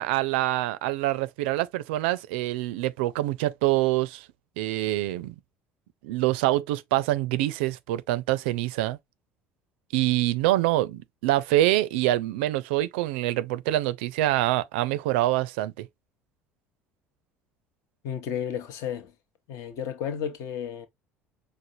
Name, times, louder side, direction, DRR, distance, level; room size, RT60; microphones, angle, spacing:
voice 1, 0.0-4.3 4.6-5.4 6.0-9.0 9.9-15.9, right 16 dB, 65° right, 0.4 m, -25 dB
voice 2, 18.0-19.1 19.5-20.9, left 8 dB, 55° left, 0.8 m, -32 dB
5.0 x 2.0 x 2.6 m
figure-of-eight pair, 60°, 6 cm